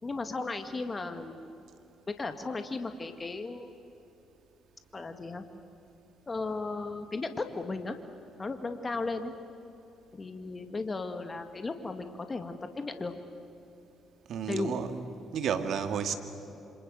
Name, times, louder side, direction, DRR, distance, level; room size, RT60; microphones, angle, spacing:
voice 1, 0.0-1.5 2.2-3.7 4.9-5.4 6.3-8.0 8.4-9.3 10.1-13.1 14.5-14.8, left 3 dB, 30° left, 7 dB, 2.1 m, -35 dB
voice 2, 14.3-15.0 15.3-16.1, right 7 dB, 65° right, 8 dB, 2.2 m, -31 dB
28.0 x 26.5 x 8.1 m, 2.9 s
hypercardioid pair, 50°, 0 cm